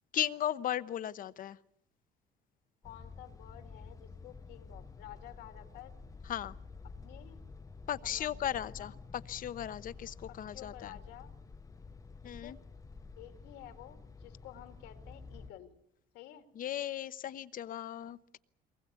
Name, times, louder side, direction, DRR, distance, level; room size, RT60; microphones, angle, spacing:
voice 1, 0.1-1.6 6.3-6.5 7.9-8.9 9.3-11.0 12.2-12.6 16.6-18.4, left 11 dB, 55° left, 15 dB, 0.9 m, -36 dB
voice 2, 2.8-5.9 7.0-7.4 8.0-9.0 10.3-11.3 12.2-12.6 13.2-15.7 16.1-16.5, left 12 dB, 90° left, 6 dB, 2.5 m, -52 dB
sound 1, 2.8-15.5, left 4 dB, 20° left, 0.8 m, -50 dB
23.5 x 20.0 x 8.3 m, 0.79 s
cardioid pair, 110°, 17 cm